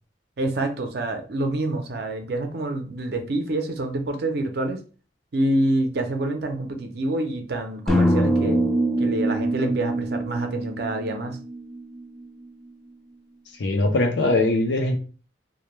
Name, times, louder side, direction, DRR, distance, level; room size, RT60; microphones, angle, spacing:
voice 1, 0.4-4.8 5.3-8.7 9.0-11.4, right 1 dB, 65° right, 5 dB, 0.5 m, -27 dB
sound 1, 7.9-12.0, right 1 dB, 5° left, 0.4 m, -23 dB
voice 2, 13.6-15.0, left 2 dB, 80° left, 5 dB, 0.5 m, -21 dB
2.1 x 2.1 x 3.0 m, 0.38 s
head